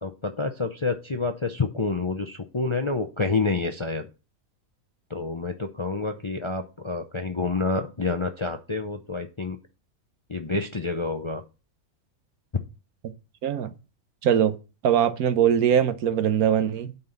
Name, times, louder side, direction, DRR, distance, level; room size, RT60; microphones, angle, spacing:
voice 1, 0.0-4.1 5.1-9.6 10.3-11.4, left 3 dB, 35° left, 0.5 m, -28 dB
voice 2, 13.4-13.7 14.2-14.5 14.8-17.0, right 9 dB, 85° right, 1.4 m, -21 dB
9.4 x 4.4 x 6.6 m
omnidirectional pair, 1.5 m